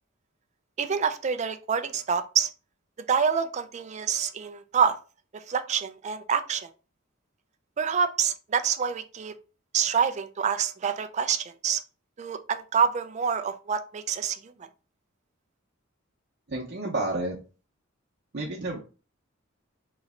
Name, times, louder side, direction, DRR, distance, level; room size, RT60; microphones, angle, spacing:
voice 1, 0.8-2.5 3.1-5.0 5.3-6.7 7.8-9.3 9.7-11.8 12.2-14.7, right 7 dB, 35° right, 0.4 m, -27 dB
voice 2, 16.5-17.4 18.3-18.8, right 2 dB, 55° right, 0.8 m, -30 dB
3.2 x 3.0 x 3.6 m
head